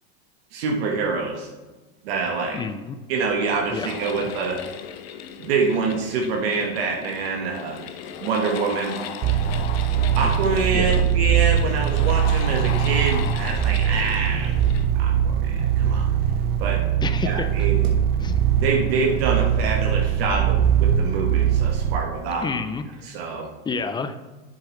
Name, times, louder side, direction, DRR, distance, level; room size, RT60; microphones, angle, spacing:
voice 1, 0.5-1.5 2.0-2.6 3.1-4.6 5.4-7.8 8.2-9.0 10.1-14.5 15.0-16.1 16.6-16.8 17.2-17.8 18.6-22.5 23.1-23.5, right 4 dB, 75° right, 1 dB, 1.4 m, -26 dB
voice 2, 2.5-3.0 3.7-4.3 10.2-10.4 10.7-11.0 17.0-17.5 18.2-18.4 22.4-22.8 23.6-24.2, left 5 dB, 15° left, 10 dB, 0.4 m, -29 dB
sound 1, 3.8-14.9, left 9 dB, 75° left, 0.8 m, -36 dB
sound 2, 9.2-22.0, right 9 dB, 35° right, 0.5 m, -21 dB
7.7 x 6.6 x 3.1 m, 1.2 s
supercardioid pair, 120°, 31 cm